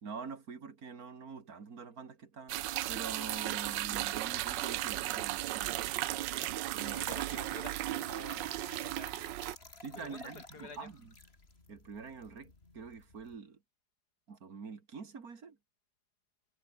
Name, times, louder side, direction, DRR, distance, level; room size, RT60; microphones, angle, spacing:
voice 1, 0.0-2.6 2.9-5.9 6.7-7.0 9.8-11.1 11.7-13.6 14.3-15.6, right 5 dB, 50° right, 2.7 m, -45 dB
sound 1, 2.5-9.6, right 15 dB, 80° right, 1.3 m, -35 dB
Trickle dribble / Fill (with liquid), 6.6-13.4, left 3 dB, 35° left, 3.2 m, -55 dB
voice 2, 6.7-9.2 9.7-10.9, left 4 dB, 60° left, 3.8 m, -50 dB
omnidirectional pair, 2.0 m